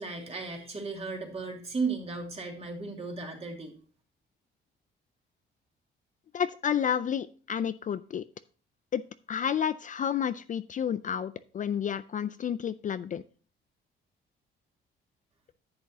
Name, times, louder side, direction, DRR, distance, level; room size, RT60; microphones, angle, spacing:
voice 1, 0.0-3.7, right 4 dB, 30° right, 1 dB, 2.4 m, -35 dB
voice 2, 6.3-8.2 8.9-9.0 9.3-13.2, left 8 dB, 40° left, 14 dB, 0.4 m, -30 dB
10.0 x 7.6 x 2.8 m, 0.39 s
cardioid pair, 90°, 20 cm